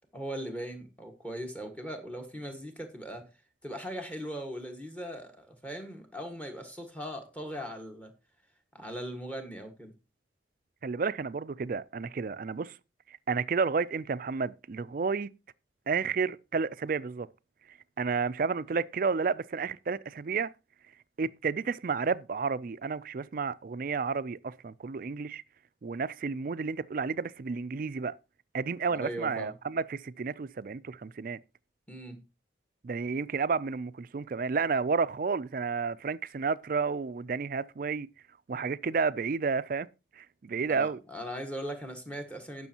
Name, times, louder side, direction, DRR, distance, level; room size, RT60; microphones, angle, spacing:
voice 1, 0.1-3.3 3.6-8.1 8.7-9.9 28.9-29.5 31.9-32.2 40.7-42.7, equal, 10° left, 1.5 m, -39 dB
voice 2, 10.8-12.7 13.3-15.3 15.9-17.3 18.0-20.5 21.2-25.4 25.8-28.1 28.5-31.4 32.8-38.1 38.5-39.9 40.2-41.0, right 5 dB, 50° right, 0.4 m, -31 dB
18.0 x 6.2 x 2.9 m
head